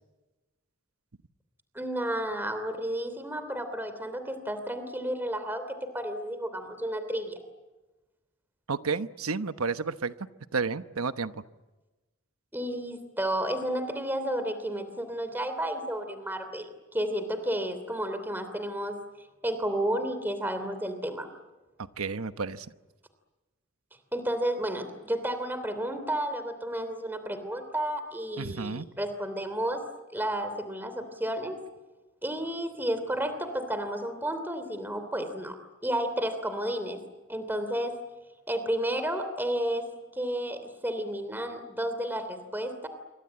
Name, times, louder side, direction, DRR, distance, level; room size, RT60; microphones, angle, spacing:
voice 1, 1.7-7.4 12.5-19.0 19.4-21.3 24.1-29.8 30.1-31.6 32.2-35.5 35.8-37.0 37.3-38.0 38.5-39.9 40.1-42.9, right 1 dB, 10° right, 9 dB, 2.9 m, -32 dB
voice 2, 8.7-10.1 10.5-11.4 22.0-22.7 28.4-28.9, right 4 dB, 90° right, 11 dB, 1.1 m, -31 dB
28.0 x 24.5 x 8.8 m, 1.1 s
head